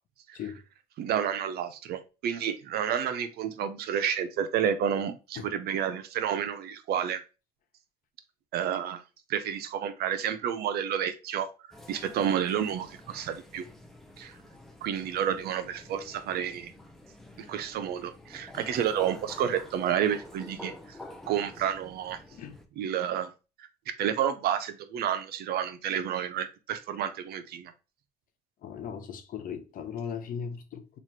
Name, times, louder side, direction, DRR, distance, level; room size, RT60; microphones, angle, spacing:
voice 1, 1.0-7.2 8.5-9.0 9.3-11.5 11.9-13.6 14.2-14.4 14.8-16.7 17.5-21.0 21.3-22.2 22.8-23.3 24.0-27.7, right 9 dB, 70° right, 0.6 m, -30 dB
sound 1, 11.7-22.7, left 1 dB, ahead, 0.6 m, -48 dB
voice 2, 28.6-31.0, left 7 dB, 55° left, 0.7 m, -38 dB
3.1 x 2.4 x 4.2 m
cardioid pair, 110°, 17 cm